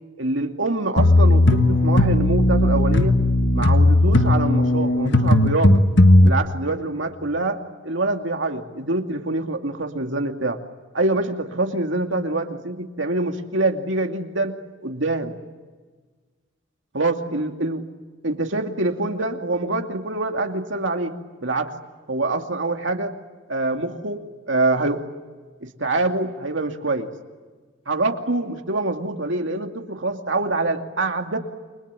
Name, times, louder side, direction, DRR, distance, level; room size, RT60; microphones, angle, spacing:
voice 1, 0.2-3.2 3.5-5.8 6.2-10.6 10.9-14.5 14.8-15.3 16.9-17.8 18.2-21.2 21.4-21.7 22.1-23.2 23.5-24.2 24.5-25.1 25.6-27.1 27.9-31.4, right 2 dB, 75° right, 4 dB, 2.5 m, -25 dB
sound 1, 1.0-6.3, left 1 dB, 70° left, 1.8 m, -16 dB
29.5 x 24.0 x 8.3 m, 1.4 s
head